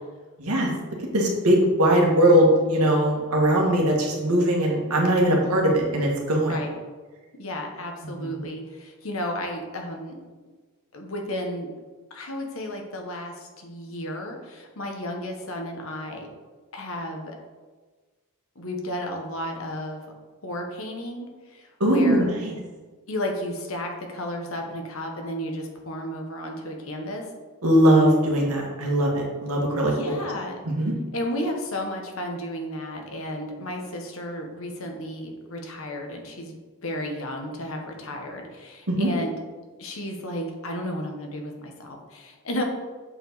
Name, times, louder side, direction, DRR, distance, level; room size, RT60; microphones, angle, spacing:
voice 1, 1.1-6.5 8.2-8.4 21.8-22.5 27.6-30.2 30.7-30.9 38.9-39.1, right 1 dB, 85° right, -1 dB, 1.7 m, -20 dB
voice 2, 7.4-10.2 10.9-11.7 12.1-16.3 16.7-17.4 18.5-20.0 20.4-22.3 23.1-27.3 29.9-30.6 31.1-39.3 39.8-42.6, left 1 dB, 65° left, 2 dB, 1.2 m, -33 dB
7.7 x 4.8 x 4.0 m, 1.3 s
head